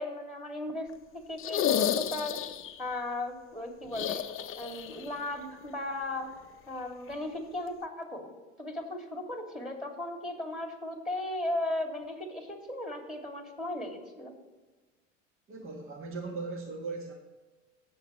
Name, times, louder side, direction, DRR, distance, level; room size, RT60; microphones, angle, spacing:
voice 1, 0.0-2.4 2.8-4.3 4.6-6.4 6.7-8.3 8.6-14.4, left 1 dB, ahead, 2 dB, 2.5 m, -36 dB
sound 1, 1.4-2.8 3.9-5.1 5.3-5.4 7.1-7.2, left 9 dB, 35° left, 0.8 m, -31 dB
voice 2, 15.5-17.1, right 3 dB, 35° right, 2 dB, 1.6 m, -38 dB
17.5 x 7.2 x 3.2 m, 1.2 s
hypercardioid pair, 85°, 37 cm